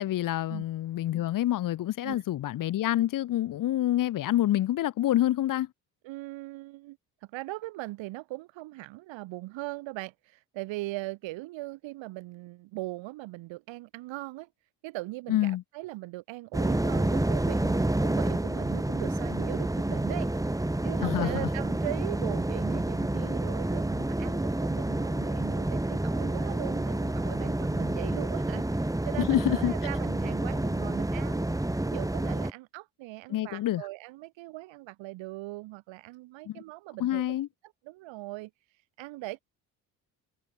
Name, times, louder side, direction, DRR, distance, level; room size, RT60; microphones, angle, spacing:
voice 1, 0.0-5.7 15.3-15.6 21.0-21.5 29.2-29.7 33.3-33.8 36.5-36.6 37.0-37.5, left 13 dB, 45° left, 0.8 m, -27 dB
voice 2, 6.0-7.0 7.3-14.5 14.8-20.3 20.8-31.5 31.9-37.2 37.8-38.5 39.0-39.4, right 19 dB, 65° right, 4.7 m, -40 dB
sound 1, 16.5-32.5, right 1 dB, 5° right, 1.8 m, -29 dB
hypercardioid pair, 55°, 48 cm